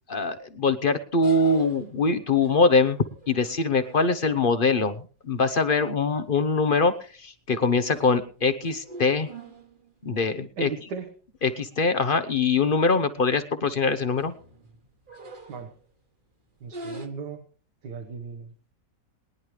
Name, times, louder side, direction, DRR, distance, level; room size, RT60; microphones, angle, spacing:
voice 1, 0.1-9.3 10.0-10.7 11.4-14.3, left 4 dB, 45° left, 10 dB, 0.7 m, -23 dB
sound 1, 1.2-4.5 6.2-6.4 6.9-7.2 7.6-10.2 10.6-10.7 11.0-11.1 11.9-12.0 12.3-12.5 12.8-13.2 13.8-16.0 16.6-17.1, right 2 dB, 30° right, 1.3 m, -46 dB
voice 2, 10.6-11.1 15.5-15.7 16.6-17.5 17.8-18.7, right 6 dB, 75° right, 4 dB, 1.8 m, -36 dB
21.5 x 10.5 x 3.2 m, 0.38 s
omnidirectional pair, 1.9 m